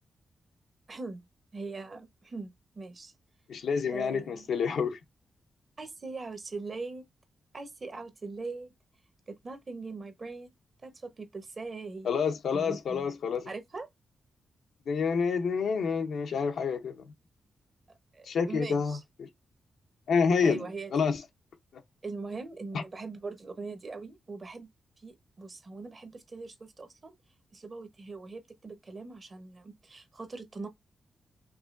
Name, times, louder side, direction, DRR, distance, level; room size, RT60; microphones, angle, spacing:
voice 1, 0.9-1.2 1.5-3.1 3.9-4.5 5.8-7.0 7.5-8.7 9.3-10.5 10.8-12.1 12.5-13.1 13.5-13.9 18.1-19.0 20.4-21.2 22.0-24.7 25.0-27.1 27.5-30.7, right 3 dB, 40° right, 0.9 m, -41 dB
voice 2, 3.5-5.0 12.0-13.5 14.9-16.9 18.3-19.0 20.1-20.7 20.9-21.2, left 5 dB, 80° left, 0.7 m, -28 dB
4.9 x 2.8 x 2.5 m
cardioid pair, 80°, 0 cm